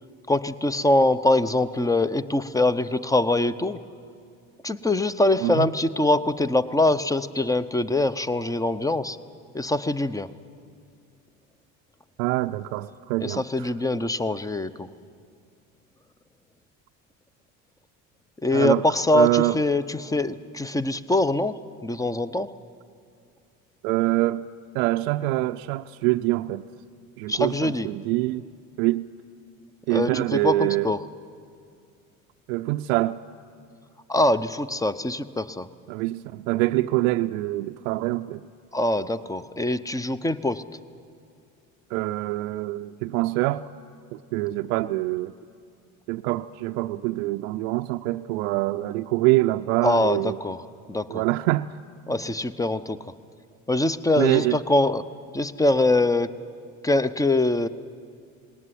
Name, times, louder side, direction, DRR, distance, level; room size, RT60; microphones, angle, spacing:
voice 1, 0.3-3.8 4.6-9.2 9.5-10.3 13.2-14.9 18.4-22.5 27.3-27.9 29.9-31.0 34.1-35.7 38.7-40.6 49.8-50.6 50.9-51.2 52.1-53.0 53.7-55.0 55.3-56.3 56.8-57.7, left 2 dB, 10° left, 0.8 m, -23 dB
voice 2, 12.2-13.7 18.5-18.8 19.1-19.6 23.8-24.5 24.7-26.6 27.2-28.5 28.8-29.1 29.9-30.9 32.5-33.2 35.9-38.4 41.9-43.7 44.1-45.3 46.1-50.4 51.1-51.7 54.2-54.6, right 18 dB, 85° right, 0.5 m, -25 dB
18.5 x 18.5 x 9.9 m
supercardioid pair, 80°, 40 cm